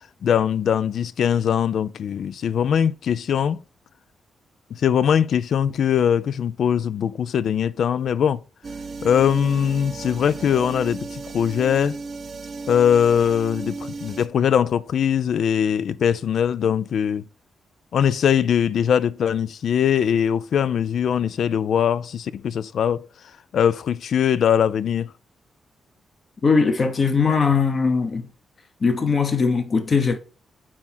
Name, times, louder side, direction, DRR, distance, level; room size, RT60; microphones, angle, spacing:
voice 1, 0.2-3.6 4.7-8.4 9.0-12.0 12.7-17.3 17.9-23.1 23.5-25.1, left 8 dB, 70° left, 0.4 m, -21 dB
sound 1, 8.6-14.3, right 4 dB, 40° right, 0.8 m, -35 dB
voice 2, 26.4-28.3 28.8-30.2, left 5 dB, 40° left, 1.1 m, -20 dB
8.4 x 3.0 x 3.8 m
cardioid pair, 95°, 0 cm